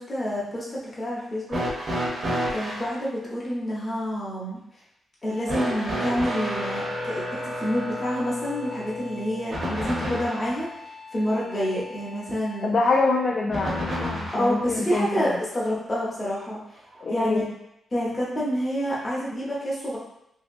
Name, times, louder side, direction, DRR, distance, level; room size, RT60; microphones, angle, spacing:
voice 1, 0.0-1.6 2.5-4.6 5.2-10.7 11.1-12.7 14.3-16.6 17.1-17.4 17.9-20.0, equal, 25° left, -6 dB, 0.8 m, -28 dB
sound 1, 1.5-2.9 5.5-10.6 13.5-14.6 15.8-15.9 17.0-17.1, equal, 50° right, 0.8 m, -30 dB
Wind instrument woodwind instrument, 5.2-12.9, left 4 dB, 70° right, 1.2 m, -44 dB
voice 2, 12.6-15.3 17.0-17.5, left 3 dB, 45° left, 0 dB, 0.3 m, -25 dB
2.8 x 2.8 x 2.5 m, 0.80 s
wide cardioid pair, 135°, 0 cm